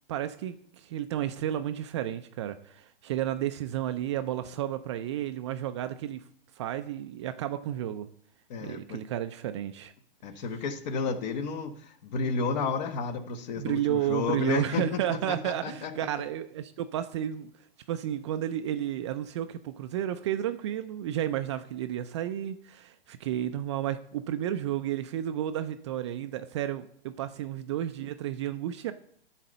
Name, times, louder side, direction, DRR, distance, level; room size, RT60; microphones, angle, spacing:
voice 1, 0.1-6.3 6.5-8.1 8.6-9.9 13.6-28.9, right 11 dB, 30° right, 9 dB, 0.4 m, -32 dB
voice 2, 8.5-9.0 10.2-16.1, left 4 dB, 45° left, 9 dB, 1.2 m, -32 dB
11.5 x 4.1 x 6.6 m, 0.63 s
hypercardioid pair, 135°, 30 cm